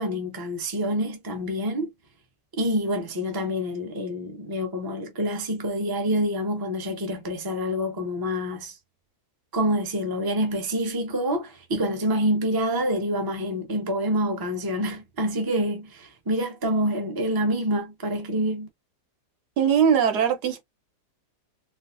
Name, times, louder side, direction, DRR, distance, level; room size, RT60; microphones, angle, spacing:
voice 1, 0.0-1.9 2.6-8.8 9.5-18.7, equal, 20° right, 0.7 m, -27 dB
voice 2, 19.6-20.6, right 8 dB, 75° right, 1.4 m, -20 dB
4.3 x 2.0 x 2.6 m
omnidirectional pair, 1.7 m